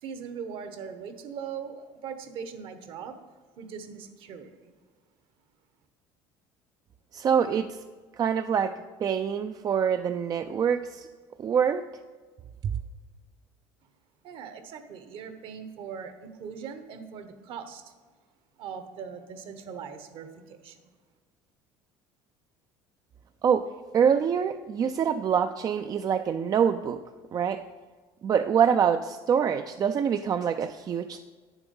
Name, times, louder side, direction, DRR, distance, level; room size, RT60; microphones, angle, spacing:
voice 1, 0.0-3.2 3.6-4.7 14.2-17.8 18.6-20.8, right 6 dB, 60° right, 9 dB, 1.2 m, -40 dB
voice 2, 7.1-7.8 8.1-11.1 11.4-11.9 12.6-12.7 23.4-27.0 27.3-27.6 28.2-31.2, right 7 dB, 40° right, 9 dB, 0.4 m, -25 dB
9.1 x 7.1 x 5.4 m, 1.5 s
supercardioid pair, 90°, 10 cm